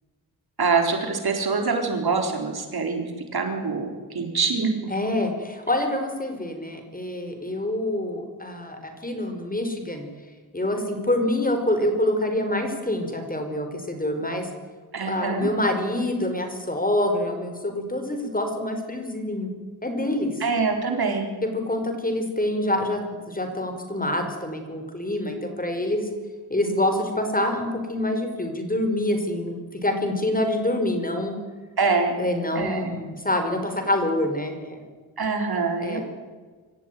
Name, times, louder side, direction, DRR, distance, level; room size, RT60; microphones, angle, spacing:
voice 1, 0.6-3.0 3.3-4.7 14.9-15.5 20.4-21.3 31.8-32.1 32.6-32.9 35.2-36.0, right 4 dB, 65° right, 4 dB, 4.2 m, -24 dB
voice 2, 4.9-10.1 10.5-14.5 15.1-19.5 19.8-20.3 21.4-23.0 23.3-26.1 26.5-29.6 29.8-31.3 32.2-34.8 35.8-36.0, left 1 dB, 20° left, 5 dB, 5.0 m, -26 dB
25.5 x 15.0 x 9.4 m, 1.4 s
cardioid pair, 70°, 40 cm